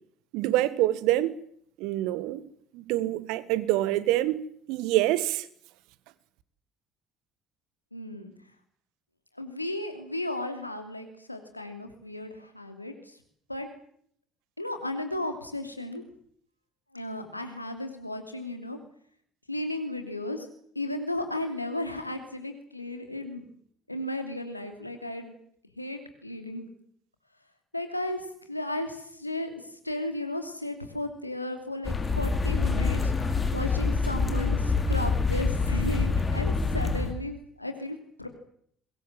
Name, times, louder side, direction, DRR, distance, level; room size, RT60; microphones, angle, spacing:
voice 1, 0.3-1.3 1.8-2.4 2.7-4.4 4.7-5.5, right 15 dB, 60° right, 1.6 m, -26 dB
voice 2, 7.9-8.3 9.3-13.2 13.5-13.7 14.6-16.0 16.9-18.8 19.5-20.5 20.7-23.4 23.9-25.3 25.8-26.7 27.7-38.3, left 1 dB, 90° left, 2.8 m, -35 dB
sound 1, 31.9-37.1, left 4 dB, 25° left, 5.2 m, -26 dB
24.0 x 21.0 x 7.8 m
figure-of-eight pair, 55°, 0 cm